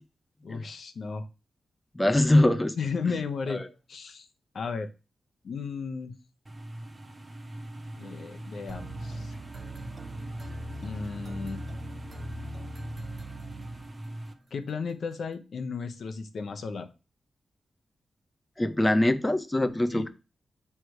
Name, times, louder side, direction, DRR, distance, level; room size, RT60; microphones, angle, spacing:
voice 1, 0.4-1.2 2.8-3.6 3.9-4.3 4.5-4.9 5.4-6.1 8.0-9.3 10.8-11.6 14.5-16.9 19.9-20.1, left 5 dB, 65° left, 7 dB, 0.9 m, -34 dB
voice 2, 2.0-2.7 3.5-3.6 18.6-20.1, left 1 dB, 10° left, 9 dB, 0.6 m, -23 dB
sound 1, 6.5-14.3, right 1 dB, 20° right, 1.0 m, -41 dB
sound 2, 8.7-14.4, right 1 dB, 40° right, 1.1 m, -42 dB
7.7 x 3.4 x 4.7 m, 0.30 s
wide cardioid pair, 130°, 0 cm